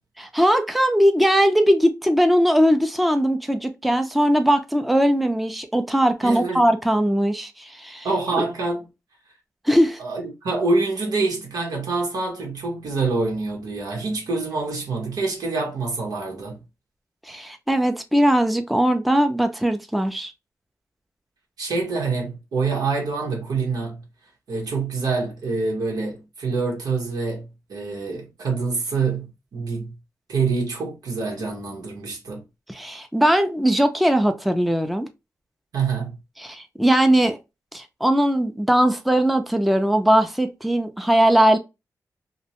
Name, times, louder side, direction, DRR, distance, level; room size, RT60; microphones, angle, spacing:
voice 1, 0.2-8.1 8.4-8.5 9.7-10.0 17.3-20.3 32.7-35.1 36.4-37.4 37.7-41.6, equal, ahead, 0.4 m, -20 dB
voice 2, 6.2-6.6 8.0-8.9 10.0-16.6 21.6-24.0 24.5-29.9 30.3-32.4 35.7-36.2, right 4 dB, 90° right, 1.1 m, -26 dB
2.7 x 2.1 x 2.8 m
wide cardioid pair, 105°, 6 cm